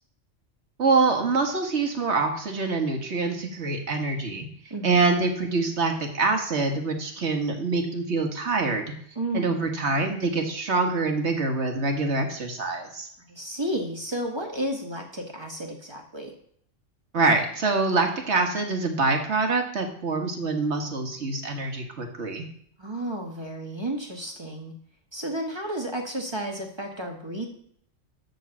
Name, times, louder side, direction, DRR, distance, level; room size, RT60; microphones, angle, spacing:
voice 1, 0.8-4.5 4.8-8.9 9.3-13.1 17.1-22.5, right 3 dB, 60° right, 3 dB, 1.7 m, -25 dB
voice 2, 4.7-5.0 9.1-9.6 13.3-16.3 22.8-24.7 25.1-27.5, right 1 dB, 20° right, 1 dB, 1.4 m, -32 dB
12.0 x 4.0 x 7.1 m, 0.65 s
omnidirectional pair, 1.3 m